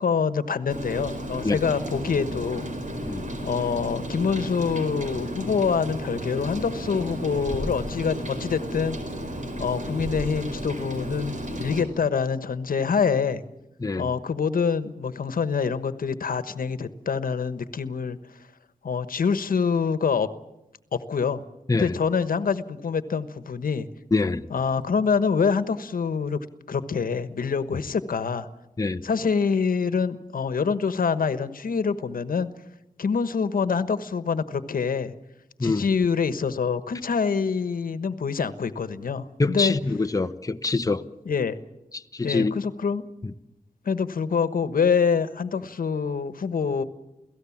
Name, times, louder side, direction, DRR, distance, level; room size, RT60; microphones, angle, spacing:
voice 1, 0.0-2.7 3.4-9.0 9.6-13.4 14.0-18.2 18.8-20.3 20.9-21.4 21.7-23.9 24.5-26.4 26.7-28.5 29.0-32.5 33.0-35.1 35.6-39.7 41.2-41.6 42.2-43.0 43.8-46.8, left 5 dB, 85° left, 1.3 m, -25 dB
Rain, 0.7-11.8, equal, 60° right, 5.1 m, -33 dB
voice 2, 24.1-24.4 28.8-29.0 35.6-35.9 39.4-41.0 41.9-42.6 43.2-43.3, left 3 dB, 25° left, 1.0 m, -25 dB
29.0 x 17.5 x 7.3 m
wide cardioid pair, 80°, 14 cm